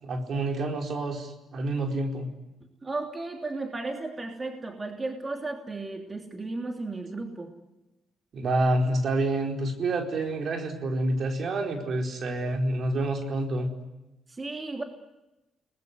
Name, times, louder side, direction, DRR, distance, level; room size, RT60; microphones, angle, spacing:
voice 1, 0.0-2.3 8.3-13.7, right 2 dB, 55° right, 3 dB, 4.5 m, -28 dB
voice 2, 2.8-7.5 14.3-14.8, right 3 dB, 25° right, 2 dB, 3.1 m, -34 dB
30.0 x 20.5 x 9.7 m, 1.0 s
cardioid pair, 90°, 0 cm